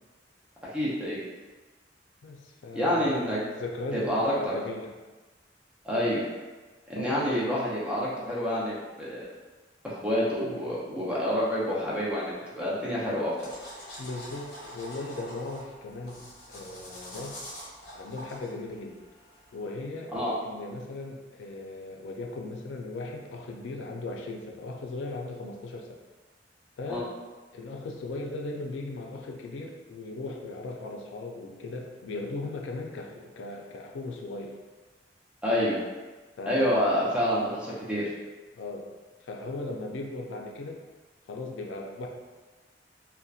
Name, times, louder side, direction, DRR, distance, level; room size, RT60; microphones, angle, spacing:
voice 1, 0.7-1.2 2.7-3.4 3.9-4.5 5.8-6.2 6.9-9.3 9.8-13.5 20.1-20.3 26.9-27.0 35.4-35.8 36.5-38.1, equal, 5° right, -7 dB, 0.5 m, -28 dB
voice 2, 2.2-4.9 6.9-7.2 10.4-11.0 14.0-17.4 17.9-19.0 19.5-20.1 20.4-26.0 26.8-27.1 27.5-34.6 36.4-36.9 38.6-38.9 39.2-40.8 41.3-42.1, left 2 dB, 85° left, 1 dB, 0.4 m, -38 dB
sound 1, 13.4-19.6, equal, 60° left, 0.8 m, -45 dB
2.7 x 2.1 x 2.3 m, 1.3 s
head